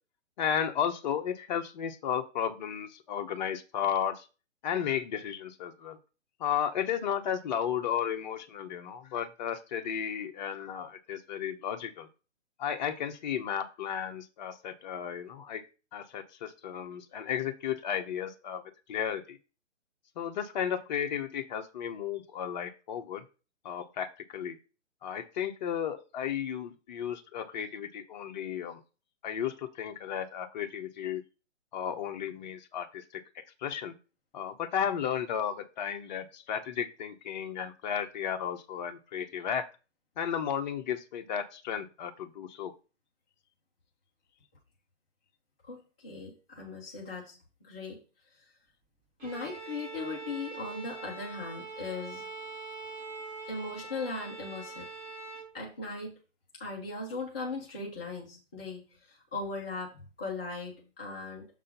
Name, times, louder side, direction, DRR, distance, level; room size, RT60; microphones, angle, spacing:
voice 1, 0.4-4.3 4.6-6.0 6.4-12.1 12.6-15.6 15.9-19.4 20.2-23.2 23.6-24.6 25.0-28.8 29.2-31.2 31.7-34.0 34.3-39.7 40.2-42.7, left 8 dB, 35° left, 6 dB, 1.0 m, -34 dB
voice 2, 45.7-47.4 47.6-48.0 48.3-48.4 49.2-52.3 53.5-54.9 55.5-56.2 56.5-61.5, left 3 dB, 10° left, -4 dB, 0.4 m, -38 dB
Bowed string instrument, 49.2-55.6, right 3 dB, 25° right, 2.7 m, -43 dB
6.7 x 3.7 x 5.7 m, 0.33 s
hypercardioid pair, 145°, 37 cm